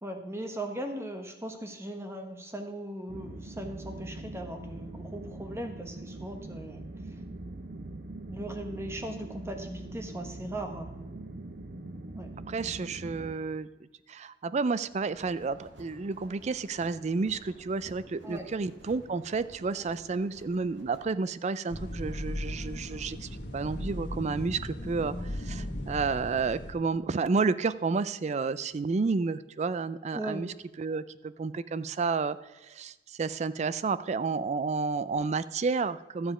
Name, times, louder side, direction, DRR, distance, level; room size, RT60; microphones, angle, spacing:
voice 1, 0.0-6.8 8.2-10.9 12.2-12.3 18.2-18.5 19.7-19.8 20.1-20.2 30.1-30.4, right 1 dB, 15° right, 5 dB, 1.1 m, -38 dB
sound 1, 3.1-13.3, right 2 dB, 55° right, 0.8 m, -42 dB
voice 2, 12.5-13.7 14.1-32.4 32.6-36.3, right 4 dB, 40° right, 16 dB, 0.4 m, -31 dB
sound 2, 14.9-21.2, right 1 dB, 85° right, 1.8 m, -53 dB
sound 3, 21.7-26.7, left 1 dB, 70° left, 1.5 m, -37 dB
12.5 x 7.2 x 4.9 m, 1.1 s
head